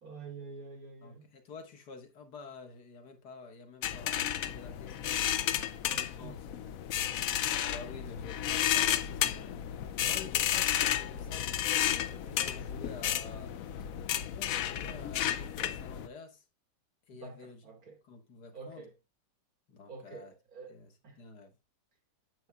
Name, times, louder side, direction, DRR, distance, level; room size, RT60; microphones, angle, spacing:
voice 1, 0.0-1.3 5.5-6.4 17.1-18.0 18.5-18.9 19.9-21.2, right 4 dB, 60° right, 2.5 m, -48 dB
voice 2, 1.0-5.3 5.9-6.5 7.6-9.6 10.0-13.6 14.3-16.5 17.1-17.6 18.0-18.9 19.7-20.3 20.7-20.9 21.2-21.6, left 4 dB, 85° left, 2.0 m, -49 dB
sound 1, 3.8-16.1, left 10 dB, 65° left, 0.9 m, -32 dB
9.0 x 8.2 x 2.3 m
omnidirectional pair, 1.7 m